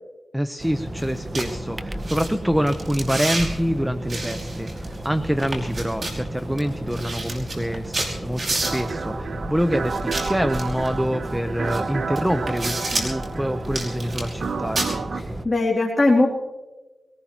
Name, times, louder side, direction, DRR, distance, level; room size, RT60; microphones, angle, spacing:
voice 1, 0.3-7.9 8.2-15.0, equal, 5° right, 9 dB, 0.8 m, -26 dB
sound 1, 0.6-15.5, right 1 dB, 35° right, 1.2 m, -33 dB
sound 2, 1.0-1.1 1.3-1.5 2.0-2.3 2.7-3.5 4.1-5.1 5.4-6.2 6.6-6.7 6.9-8.9 9.9-10.9 11.7-11.8 12.1-13.2 13.6-14.4 14.8-14.9, right 2 dB, 55° right, 5.2 m, -29 dB
sound 3, 8.6-15.2, right 4 dB, 75° right, 0.7 m, -31 dB
voice 2, 15.1-16.3, left 2 dB, 30° left, -3 dB, 2.7 m, -20 dB
23.0 x 18.5 x 2.9 m, 1.2 s
cardioid pair, 60°, 0 cm